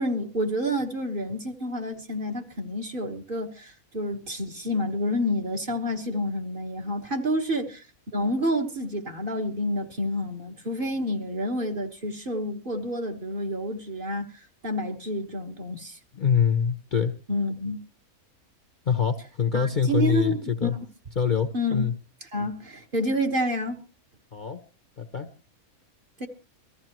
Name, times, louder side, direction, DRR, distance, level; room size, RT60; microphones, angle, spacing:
voice 1, 0.0-7.8 8.1-14.3 14.6-16.0 17.3-17.8 19.5-20.8 21.5-21.8 22.3-23.8 26.2-26.3, equal, 40° right, 1.5 m, -29 dB
voice 2, 16.1-17.1 18.9-20.7 21.2-21.9 24.3-24.6 25.0-25.3, left 7 dB, 40° left, 0.9 m, -25 dB
23.5 x 14.5 x 3.0 m
omnidirectional pair, 1.5 m